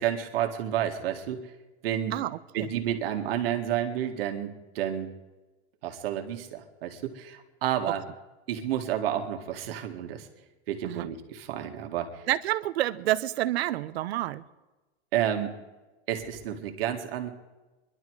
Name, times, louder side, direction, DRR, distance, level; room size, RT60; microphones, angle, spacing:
voice 1, 0.0-1.4 1.8-2.2 2.5-5.1 5.8-8.1 8.5-10.3 10.7-12.2 15.1-15.5 16.1-17.3, right 10 dB, 65° right, 4 dB, 2.0 m, -30 dB
voice 2, 2.1-2.7 10.8-11.1 12.3-14.4, right 14 dB, 90° right, 14 dB, 0.8 m, -29 dB
23.5 x 11.5 x 4.7 m, 1.2 s
supercardioid pair, 175°, 31 cm